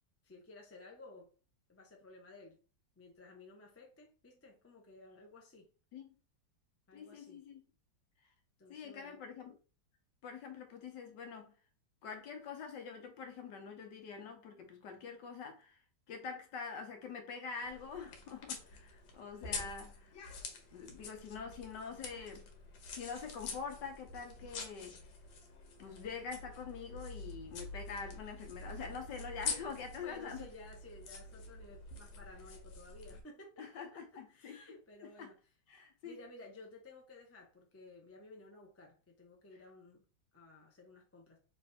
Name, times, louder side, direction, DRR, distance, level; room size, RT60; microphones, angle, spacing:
voice 1, 0.2-1.3 1.7-2.6 3.0-5.7 6.9-7.4 8.6-9.2 29.5-29.6 30.0-35.4 36.0-40.0 40.3-41.4, left 2 dB, 20° left, 0.3 m, -55 dB
voice 2, 6.9-7.6 8.7-9.5 10.2-11.5 12.0-15.8 16.1-20.1 20.7-22.5 22.9-25.0 25.8-30.4 33.6-34.6 35.2-35.3 35.7-36.2, left 5 dB, 70° left, 1.5 m, -45 dB
sound 1, 17.6-33.2, left 4 dB, 85° left, 1.7 m, -46 dB
3.4 x 3.2 x 4.2 m
omnidirectional pair, 2.0 m